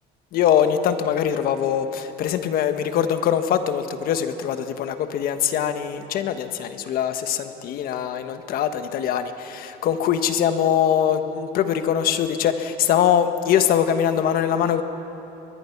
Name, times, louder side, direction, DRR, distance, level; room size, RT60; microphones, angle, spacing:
voice 1, 0.3-14.8, left 9 dB, 55° left, 9 dB, 1.3 m, -22 dB
22.0 x 21.0 x 6.0 m, 3.0 s
cardioid pair, 140°, 18 cm